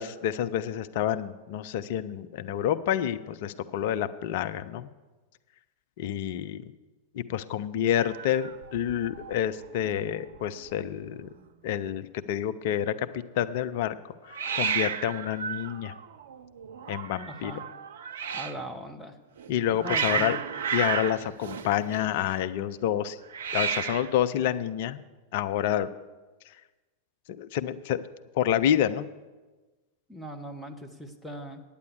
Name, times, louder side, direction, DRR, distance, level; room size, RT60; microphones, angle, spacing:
voice 1, 0.0-4.9 6.0-6.6 7.1-11.3 11.6-13.1 13.3-14.0 14.2-15.9 16.9-17.5 19.5-20.4 20.7-23.2 23.5-25.0 25.3-25.9 27.4-28.0 28.4-29.1, left 10 dB, 50° left, 11 dB, 0.5 m, -28 dB
Hiss, 8.0-9.4 9.6-10.1 10.4-10.5 10.6-11.3 14.3-18.6 19.4-22.3 23.3-24.2, right 7 dB, 60° right, 0.6 m, -33 dB
voice 2, 17.3-17.6 18.3-19.2 19.7-20.4 30.1-31.6, equal, ahead, 3 dB, 1.2 m, -39 dB
9.4 x 8.4 x 8.0 m, 1.2 s
figure-of-eight pair, 90°, 0 cm